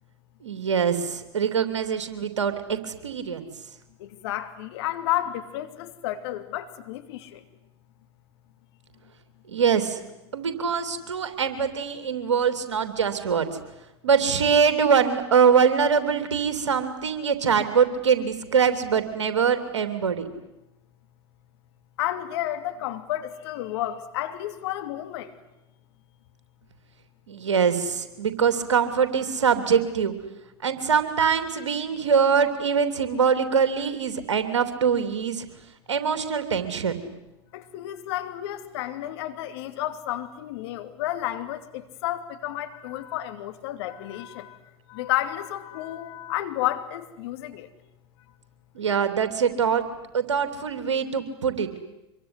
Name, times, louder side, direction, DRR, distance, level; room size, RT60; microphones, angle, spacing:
voice 1, 0.4-3.5 9.5-10.0 10.3-13.6 14.0-20.2 27.3-30.1 30.6-35.4 35.9-37.0 48.7-49.8 50.1-51.7, right 6 dB, 80° right, 9 dB, 3.1 m, -23 dB
voice 2, 4.0-7.4 22.0-25.3 37.5-44.6 44.9-47.7, left 13 dB, 65° left, 9 dB, 2.8 m, -31 dB
25.5 x 23.0 x 9.8 m, 0.92 s
hypercardioid pair, 90°, 15 cm